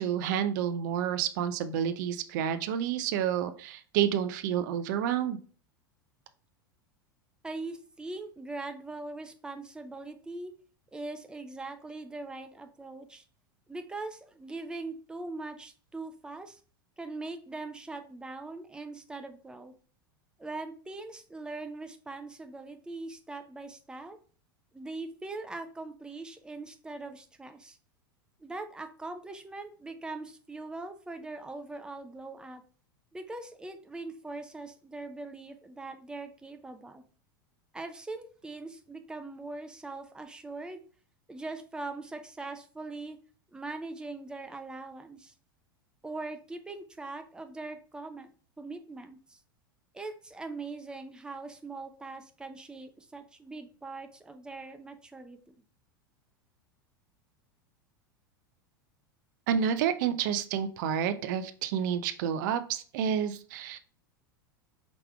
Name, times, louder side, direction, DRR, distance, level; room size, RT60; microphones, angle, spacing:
voice 1, 0.0-5.4 59.5-63.8, right 9 dB, 55° right, 11 dB, 0.4 m, -29 dB
voice 2, 7.4-10.5 10.9-13.2 13.7-16.6 17.0-19.7 20.4-24.2 24.7-27.8 28.4-32.6 33.1-37.0 37.7-40.8 41.3-43.2 43.5-45.3 46.0-48.3 48.6-49.4 49.9-55.5, right 3 dB, 5° right, 7 dB, 0.5 m, -41 dB
4.9 x 3.4 x 2.2 m, 0.41 s
figure-of-eight pair, 85°, 12 cm